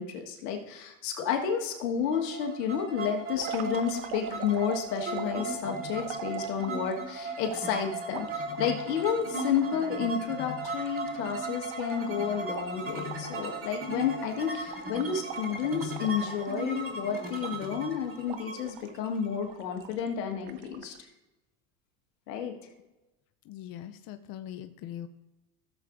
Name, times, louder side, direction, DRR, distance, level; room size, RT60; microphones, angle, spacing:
voice 1, 0.0-21.1 22.3-22.5, left 7 dB, 85° left, 3 dB, 1.6 m, -31 dB
sound 1, 2.1-19.8, right 2 dB, 25° right, 2.3 m, -37 dB
sound 2, 3.3-6.9 7.4-10.0 10.3-10.4 10.6-13.6 13.8-14.1 14.4-16.9 17.4-17.9 18.3-19.0 19.5-20.1 20.5-21.0, right 10 dB, 55° right, 1.0 m, -44 dB
voice 2, 23.4-25.1, left 11 dB, 45° left, 8 dB, 0.6 m, -41 dB
14.5 x 7.4 x 2.6 m, 1.0 s
hypercardioid pair, 95°, 47 cm